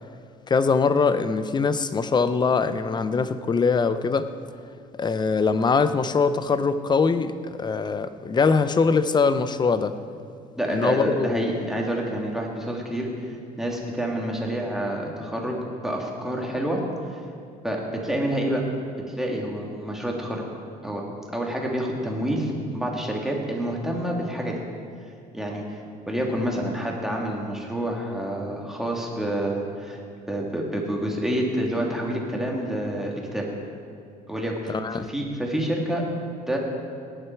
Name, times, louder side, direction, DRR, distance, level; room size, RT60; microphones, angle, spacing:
voice 1, 0.5-4.3 4.9-9.9 10.7-11.5 34.7-35.1, left 5 dB, 25° left, 12 dB, 0.6 m, -22 dB
voice 2, 10.6-15.6 15.8-16.8 17.1-17.2 17.6-18.6 19.1-20.4 20.8-21.0 21.3-24.6 25.3-25.6 26.1-30.0 30.3-33.4 34.3-36.0 36.5-36.6, right 1 dB, ahead, -1 dB, 2.4 m, -28 dB
18.0 x 10.0 x 4.6 m, 2.3 s
cardioid pair, 110°, 17 cm